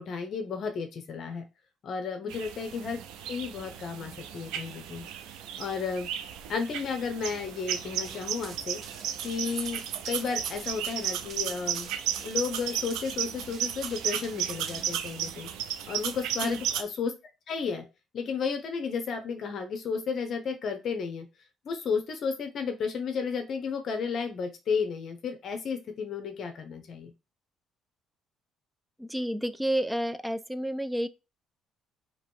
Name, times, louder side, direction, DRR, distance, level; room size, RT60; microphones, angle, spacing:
voice 1, 0.0-1.4 1.8-3.0 3.3-5.0 5.6-6.1 6.5-8.8 9.2-11.9 12.2-15.5 15.9-17.1 17.5-17.8 18.1-21.3 21.6-27.1, left 5 dB, 55° left, 0.7 m, -33 dB
sound 1, 2.3-16.8, right 9 dB, 90° right, 0.5 m, -34 dB
Run, 8.0-15.3, right 5 dB, 50° right, 0.7 m, -48 dB
voice 2, 29.0-31.1, equal, 5° right, 0.3 m, -30 dB
2.9 x 2.9 x 4.5 m
cardioid pair, 95°, 0 cm